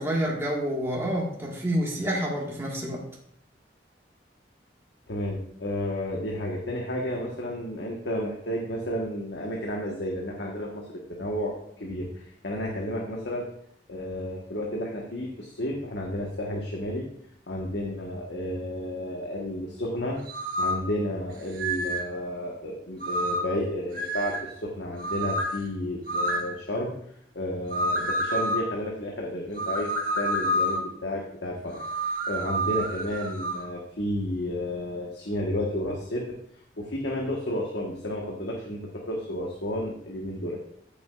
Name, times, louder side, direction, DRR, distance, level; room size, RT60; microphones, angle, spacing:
voice 1, 0.0-3.0, equal, 15° right, -4 dB, 1.8 m, -28 dB
voice 2, 5.1-13.5 13.9-17.0 17.5-20.2 20.6-26.9 27.3-36.4 36.8-40.7, left 1 dB, 85° left, -1 dB, 1.5 m, -32 dB
sound 1, 20.3-20.9 21.6-22.1 23.0-23.6 23.9-24.5 25.0-25.6 26.1-26.5 27.7-28.7 29.6-30.9 31.8-33.6, right 1 dB, 55° right, 1.3 m, -28 dB
14.5 x 7.0 x 2.5 m, 0.67 s
head